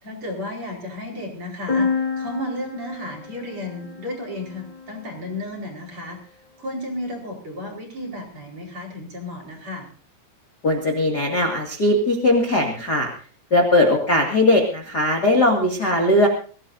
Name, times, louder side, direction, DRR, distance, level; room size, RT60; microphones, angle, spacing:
voice 1, 0.0-6.2 6.6-9.9, left 1 dB, 25° right, 1 dB, 4.8 m, -33 dB
sound 1, 1.7-5.4, left 5 dB, 10° left, 3.4 m, -29 dB
voice 2, 10.6-13.1 13.5-16.3, left 1 dB, 85° left, 1 dB, 0.9 m, -19 dB
23.0 x 16.5 x 2.7 m, 0.39 s
omnidirectional pair, 5.9 m